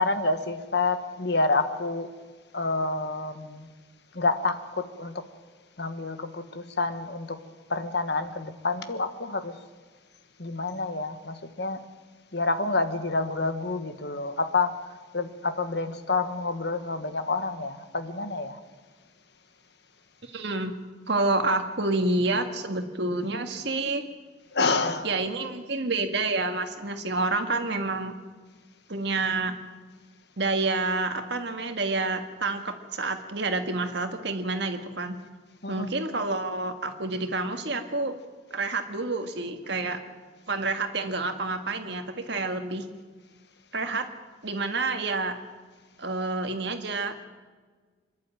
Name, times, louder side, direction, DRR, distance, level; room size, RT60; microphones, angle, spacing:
voice 1, 0.0-2.1 2.5-3.7 4.1-5.1 5.8-7.4 7.7-9.5 10.4-11.8 12.3-14.8 15.1-18.6 24.5-25.1 35.6-35.9, left 3 dB, 55° left, 10 dB, 1.3 m, -28 dB
voice 2, 20.2-20.7 21.1-24.0 25.0-28.1 28.9-29.6 30.4-35.2 35.7-38.1 38.5-40.0 40.5-42.9 43.7-44.1 44.4-45.4 46.0-47.3, right 3 dB, 60° right, 6 dB, 1.8 m, -28 dB
25.5 x 11.5 x 9.1 m, 1.4 s
head